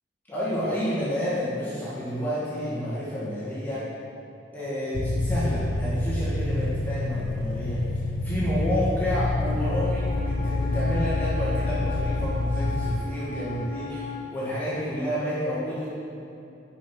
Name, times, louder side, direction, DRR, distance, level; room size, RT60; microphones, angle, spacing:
voice 1, 0.3-3.9 4.5-7.8 8.2-15.9, equal, 10° left, -10 dB, 1.5 m, -30 dB
sound 1, 4.9-13.0, left 2 dB, 50° left, 0.4 m, -27 dB
Wind instrument woodwind instrument, 9.6-14.4, left 3 dB, 80° left, 1.0 m, -37 dB
6.4 x 5.5 x 5.9 m, 2.6 s
head